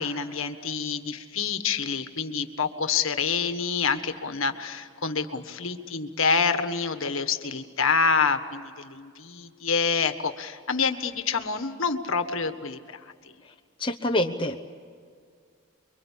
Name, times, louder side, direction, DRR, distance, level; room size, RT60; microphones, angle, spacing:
voice 1, 0.0-13.3, left 5 dB, 70° left, 8 dB, 1.6 m, -27 dB
voice 2, 13.8-14.6, left 1 dB, 25° left, 3 dB, 1.0 m, -26 dB
29.5 x 23.5 x 8.6 m, 2.1 s
head